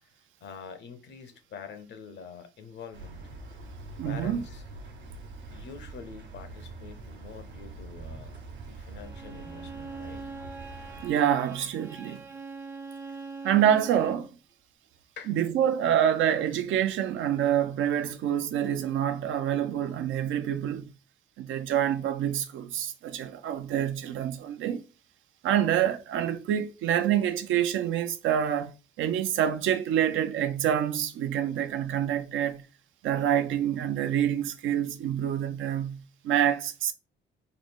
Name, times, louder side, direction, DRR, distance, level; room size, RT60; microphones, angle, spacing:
voice 1, 0.4-3.2 4.0-4.6 5.5-8.3 8.7-10.3 15.2-15.3, left 6 dB, 65° left, 0.6 m, -45 dB
sound 1, 2.9-11.1, right 3 dB, 60° right, 1.0 m, -44 dB
voice 2, 4.0-4.4 11.0-12.2 13.4-14.3 15.3-20.9 21.4-24.8 25.4-32.6 33.0-36.9, right 10 dB, 80° right, 0.5 m, -27 dB
Bowed string instrument, 9.0-14.3, right 4 dB, 10° right, 0.4 m, -42 dB
3.7 x 2.1 x 3.4 m
cardioid pair, 90°, 20 cm